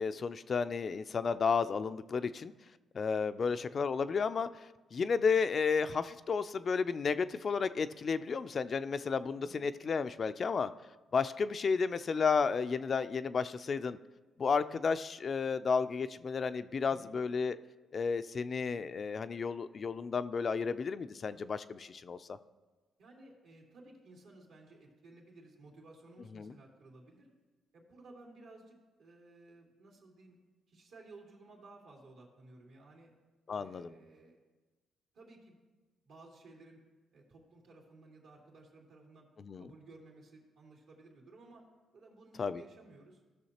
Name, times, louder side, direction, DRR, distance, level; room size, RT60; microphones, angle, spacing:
voice 1, 0.0-2.5 2.9-4.5 4.9-10.7 11.1-14.0 14.4-17.6 17.9-22.4 26.3-26.5 33.5-33.9 39.4-39.6 42.4-42.6, left 5 dB, 45° left, 12 dB, 0.3 m, -32 dB
voice 2, 3.4-3.9 9.4-9.6 16.9-17.2 23.0-27.3 27.7-30.4 30.7-33.1 33.5-34.4 35.1-35.6 36.0-36.8 37.1-39.3 39.6-41.6 41.9-43.2, right 2 dB, 80° right, -1 dB, 2.6 m, -56 dB
15.5 x 6.4 x 2.9 m, 1.2 s
cardioid pair, 90°, 0 cm